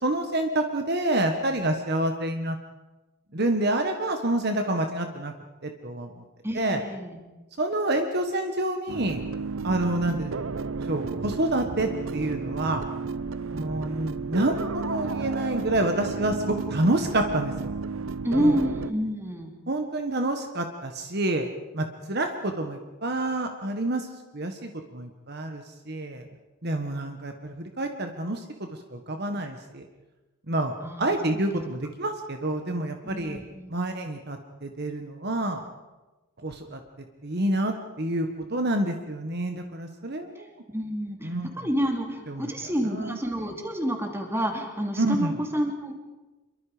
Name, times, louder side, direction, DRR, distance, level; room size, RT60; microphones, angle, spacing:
voice 1, 0.0-2.6 3.3-5.3 5.6-6.1 6.5-6.8 7.6-9.2 9.6-10.4 10.9-12.8 13.5-17.7 18.3-18.5 19.7-21.5 21.7-24.1 24.3-26.2 26.6-29.8 30.5-30.7 31.0-33.4 33.7-35.6 36.4-36.8 37.2-40.5 41.2-41.5 42.3-42.5 42.8-43.2 45.0-45.3, right 1 dB, 50° right, 5 dB, 1.5 m, -28 dB
voice 2, 6.4-7.2 18.2-19.5 30.8-31.6 33.0-33.7 40.3-45.9, equal, 10° right, 2 dB, 3.1 m, -29 dB
sound 1, 8.9-18.9, right 4 dB, 70° right, 0.7 m, -32 dB
27.5 x 23.5 x 5.1 m, 1.1 s
head